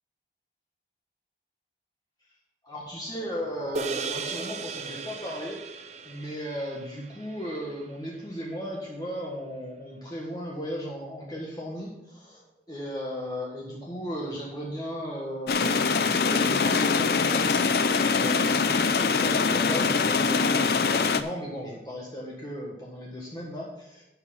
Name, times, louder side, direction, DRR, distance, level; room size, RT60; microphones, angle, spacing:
voice 1, 2.6-12.4 12.7-17.6 18.1-24.0, equal, 20° left, -4 dB, 1.5 m, -36 dB
sound 1, 3.7-8.3, right 4 dB, 40° right, 0.5 m, -37 dB
sound 2, 15.5-21.2, left 5 dB, 60° left, 0.5 m, -23 dB
10.5 x 5.6 x 5.6 m, 0.86 s
head